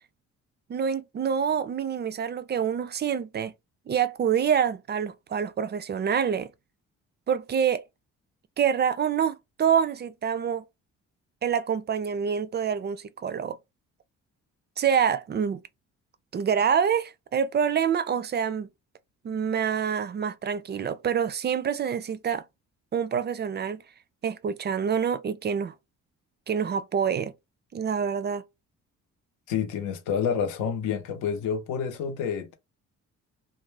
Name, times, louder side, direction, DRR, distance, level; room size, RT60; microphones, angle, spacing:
voice 1, 0.7-3.5 3.9-6.5 7.3-7.8 8.6-10.6 11.4-13.6 14.8-15.6 16.3-18.7 19.2-22.4 22.9-23.8 24.2-25.7 26.5-27.3 27.7-28.4, right 7 dB, 35° right, 0.4 m, -26 dB
voice 2, 29.5-32.6, left 7 dB, 90° left, 0.7 m, -28 dB
2.5 x 2.1 x 3.2 m
cardioid pair, 90°, 30 cm